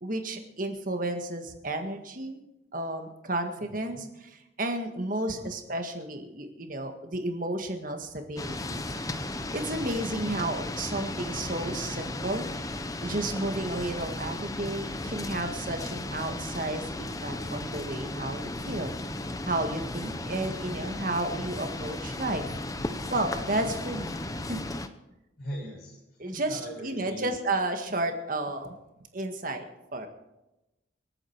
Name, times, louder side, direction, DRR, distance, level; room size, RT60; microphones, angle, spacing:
voice 1, 0.0-2.4 2.7-8.8 9.5-12.5 13.0-18.9 19.4-22.4 23.1-24.6 26.2-28.8 29.1-29.7 29.9-30.1, right 1 dB, 45° right, 5 dB, 1.7 m, -32 dB
voice 2, 3.6-4.0 5.3-5.5 20.4-20.5 25.4-27.3, equal, 50° left, -3 dB, 7.5 m, -41 dB
sound 1, 8.4-24.9, left 2 dB, 20° left, 0.7 m, -35 dB
26.5 x 8.9 x 4.6 m, 0.97 s
head